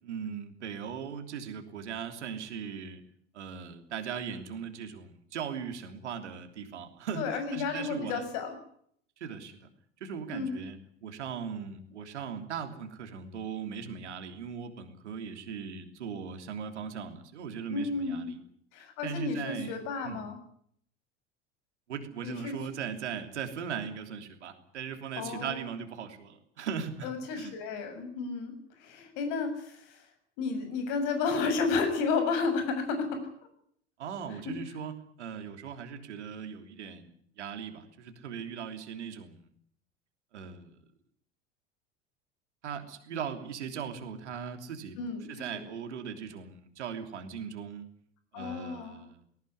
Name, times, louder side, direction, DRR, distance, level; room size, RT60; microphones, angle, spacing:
voice 1, 0.0-3.0 3.3-8.2 9.2-9.7 10.0-18.4 19.0-19.8 20.0-20.2 21.9-27.5 34.0-37.1 37.4-39.5 40.3-40.7 42.6-45.0 45.3-47.9 48.3-49.2, right 7 dB, 75° right, 7 dB, 3.2 m, -39 dB
voice 2, 7.1-8.6 10.3-10.6 17.7-18.4 18.7-20.4 22.2-22.6 25.2-25.8 27.0-28.5 28.8-30.0 30.4-33.2 34.5-34.6 45.0-45.3 45.5-45.6 48.3-49.0, left 4 dB, 55° left, 7 dB, 6.9 m, -32 dB
19.0 x 18.5 x 9.8 m, 0.67 s
figure-of-eight pair, 75°, 35 cm